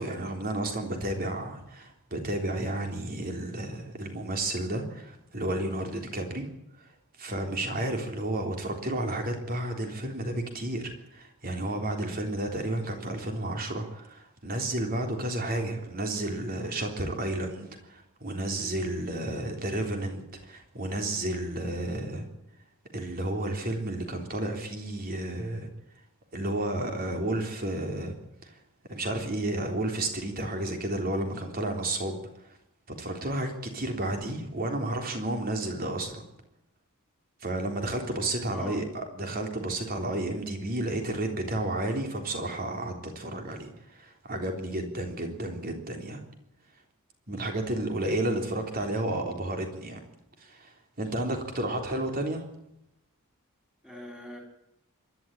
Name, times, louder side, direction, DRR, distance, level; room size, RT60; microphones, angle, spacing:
voice 1, 0.0-6.5 6.8-6.9 7.2-22.3 22.9-25.7 26.3-28.1 28.4-28.5 28.9-32.2 33.0-36.2 37.4-46.2 47.3-50.0 50.4-50.7 51.0-52.4, right 1 dB, 40° right, 4 dB, 3.6 m, -32 dB
voice 2, 38.5-38.8 53.8-54.4, equal, 5° right, 2 dB, 4.9 m, -42 dB
26.5 x 12.0 x 9.1 m, 0.83 s
head